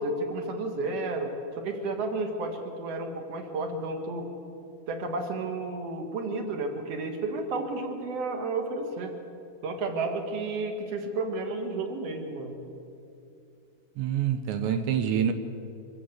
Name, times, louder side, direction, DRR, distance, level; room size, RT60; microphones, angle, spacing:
voice 1, 0.0-4.3 4.9-9.1 9.6-12.6, right 2 dB, 50° right, 2.2 m, -32 dB
voice 2, 14.0-15.3, right 9 dB, 85° right, 3.2 m, -26 dB
25.0 x 15.0 x 8.0 m
omnidirectional pair, 5.0 m